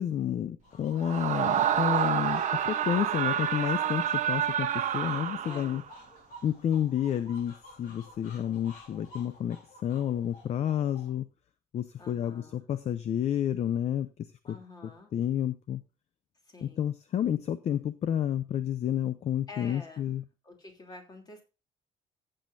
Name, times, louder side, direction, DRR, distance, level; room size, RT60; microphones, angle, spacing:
voice 1, 0.0-4.7 4.9-5.8 6.4-11.3 11.7-14.6 14.8-15.8 16.6-20.2, left 10 dB, 45° left, 13 dB, 0.6 m, -30 dB
sound 1, 0.6-11.1, left 1 dB, 65° left, 3.6 m, -52 dB
Screaming, 1.0-5.9, right 9 dB, 50° right, 1.0 m, -28 dB
voice 2, 5.4-5.9 12.0-12.6 14.4-15.1 16.5-16.9 19.5-20.1 20.4-21.4, left 3 dB, 25° left, 2 dB, 3.1 m, -48 dB
15.0 x 7.7 x 2.6 m, 0.28 s
cardioid pair, 165°, 16 cm